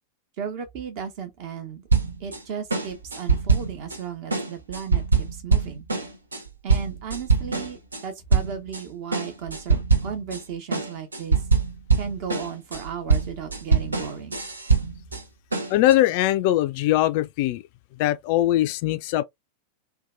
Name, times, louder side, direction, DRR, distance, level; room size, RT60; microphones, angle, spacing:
voice 1, 0.4-1.9 2.2-5.0 5.3-5.8 6.6-11.4 11.9-14.4, right 7 dB, 45° right, 0.9 m, -35 dB
sound 1, 1.9-2.4 2.7-4.0 4.3-8.0 8.3-8.8 9.1-10.4 10.7-15.2 15.5-15.9, right 5 dB, 75° right, 0.6 m, -23 dB
voice 2, 15.7-17.6 18.0-19.2, left 14 dB, 45° left, 0.3 m, -21 dB
2.7 x 2.2 x 2.5 m
figure-of-eight pair, 90°, 0 cm